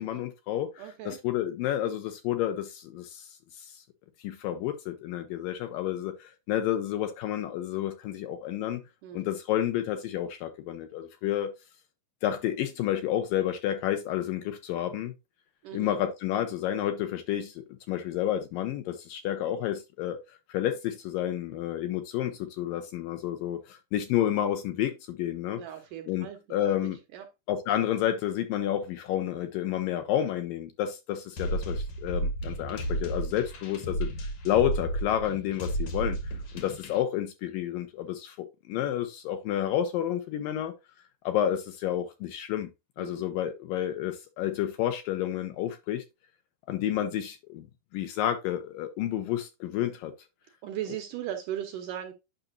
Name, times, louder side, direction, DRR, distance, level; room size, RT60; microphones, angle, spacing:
voice 1, 0.0-3.3 3.6-3.7 4.2-8.8 9.1-11.5 12.2-15.1 15.7-20.2 20.5-25.6 26.1-27.0 27.5-40.7 41.2-42.7 43.0-46.0 46.7-47.7 47.9-50.1, left 11 dB, 75° left, 2.3 m, -30 dB
voice 2, 0.8-1.2 9.0-9.3 15.6-16.0 25.5-27.3 43.0-43.3 50.6-52.1, right 10 dB, 75° right, 2.0 m, -38 dB
sound 1, 31.4-37.0, right 1 dB, 55° left, 2.1 m, -32 dB
8.9 x 5.8 x 2.6 m
omnidirectional pair, 4.5 m